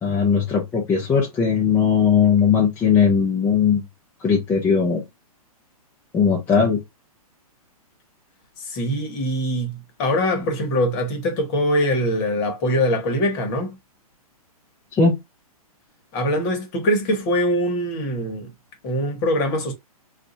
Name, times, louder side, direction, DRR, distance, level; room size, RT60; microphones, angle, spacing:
voice 1, 0.0-3.8 4.2-5.0 6.1-6.8 14.9-15.2, left 6 dB, 10° left, 0.5 m, -18 dB
voice 2, 8.6-13.7 16.1-18.5 18.8-19.7, equal, 30° left, 1.2 m, -23 dB
2.6 x 2.4 x 3.9 m
hypercardioid pair, 150°, 19 cm